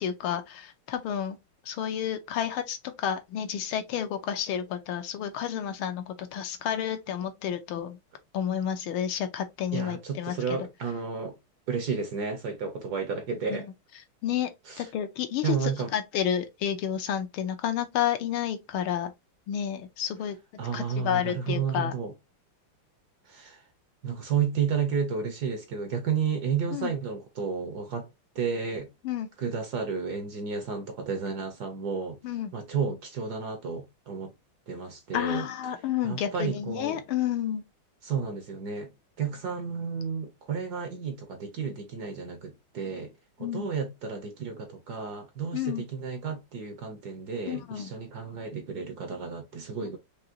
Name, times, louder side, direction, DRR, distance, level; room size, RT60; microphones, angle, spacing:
voice 1, 0.0-1.4 1.7-8.0 8.3-10.6 13.5-13.6 14.2-14.5 14.8-19.1 19.5-20.3 20.7-21.9 26.7-26.9 29.0-29.3 32.2-32.5 35.1-37.6 43.4-43.7 45.5-45.8 47.5-47.9, left 9 dB, 75° left, 1.5 m, -30 dB
voice 2, 9.7-11.4 11.7-13.7 14.6-14.9 15.4-15.9 20.6-22.1 23.3-23.6 24.0-28.1 28.3-28.9 29.4-32.2 32.5-34.3 34.7-35.5 36.0-37.0 38.0-38.9 39.2-43.1 43.4-50.0, right 6 dB, 60° right, 1.2 m, -32 dB
5.1 x 2.8 x 2.8 m
omnidirectional pair, 2.4 m